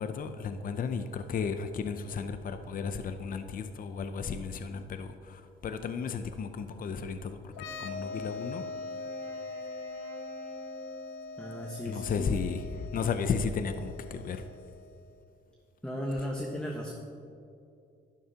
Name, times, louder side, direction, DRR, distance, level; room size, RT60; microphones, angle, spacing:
voice 1, 0.0-7.5 7.8-8.6 11.9-14.4, left 5 dB, 45° left, 8 dB, 0.6 m, -34 dB
sound 1, 7.5-15.0, left 3 dB, 85° left, 0.6 m, -42 dB
Wind instrument woodwind instrument, 7.6-12.1, equal, 45° right, 2.4 m, -48 dB
voice 2, 11.4-12.3 15.8-16.9, equal, 5° left, -2 dB, 1.2 m, -35 dB
11.5 x 11.0 x 2.9 m, 2.6 s
cardioid pair, 90°, 20 cm